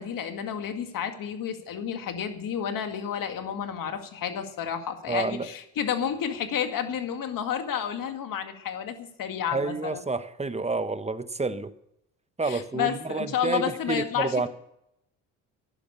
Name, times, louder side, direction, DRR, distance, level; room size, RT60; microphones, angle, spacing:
voice 1, 0.0-10.0 12.4-14.5, left 8 dB, 60° left, 2.2 m, -31 dB
voice 2, 5.1-5.5 9.5-11.7 12.4-14.5, right 3 dB, 20° right, 1.0 m, -29 dB
11.5 x 10.0 x 8.5 m
supercardioid pair, 60°, 37 cm